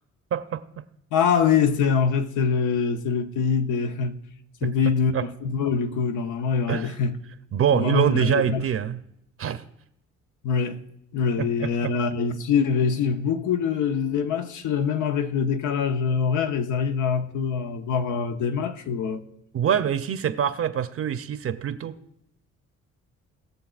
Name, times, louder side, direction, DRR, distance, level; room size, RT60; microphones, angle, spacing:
voice 1, 0.3-0.6 4.6-4.7 5.1-5.3 6.7-6.9 7.5-9.0 9.4-9.6 11.4-11.9 19.5-22.0, right 9 dB, 50° right, 0.6 m, -25 dB
voice 2, 1.1-4.2 4.6-7.2 7.7-8.6 10.4-10.8 11.1-19.2, left 6 dB, 80° left, 0.8 m, -24 dB
20.0 x 6.7 x 2.4 m
cardioid pair, 90°, 30 cm